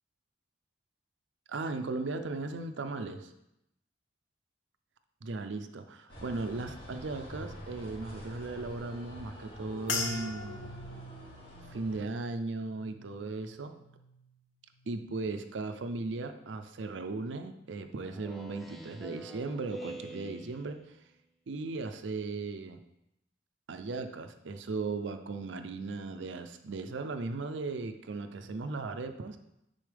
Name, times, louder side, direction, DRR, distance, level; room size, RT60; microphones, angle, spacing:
voice 1, 1.5-3.3 5.2-10.7 11.7-13.7 14.9-21.0 21.5-22.8 23.7-29.4, right 3 dB, 70° right, 8 dB, 0.5 m, -37 dB
sound 1, 6.1-12.0, equal, 55° left, 2.3 m, -47 dB
sound 2, 9.9-14.4 14.8-15.4 16.0-16.2, left 4 dB, 75° left, 0.8 m, -41 dB
Speech synthesizer, 18.0-21.1, right 2 dB, ahead, 0.5 m, -46 dB
9.8 x 4.1 x 3.4 m, 0.84 s
head